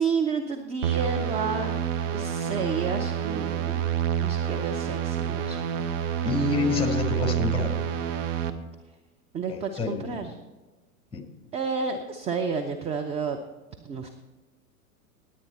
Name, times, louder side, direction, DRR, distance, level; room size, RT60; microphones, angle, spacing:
voice 1, 0.0-1.8 2.1-3.8 4.2-5.6 9.3-10.3 11.5-13.4 13.8-14.1, right 5 dB, 15° right, 5 dB, 0.5 m, -30 dB
sound 1, 0.8-8.5, right 9 dB, 55° right, 1.1 m, -28 dB
voice 2, 6.2-7.8 9.5-10.3 11.1-11.3, left 3 dB, 10° left, 5 dB, 1.8 m, -27 dB
18.5 x 8.6 x 4.2 m, 1.2 s
figure-of-eight pair, 95°, 45 cm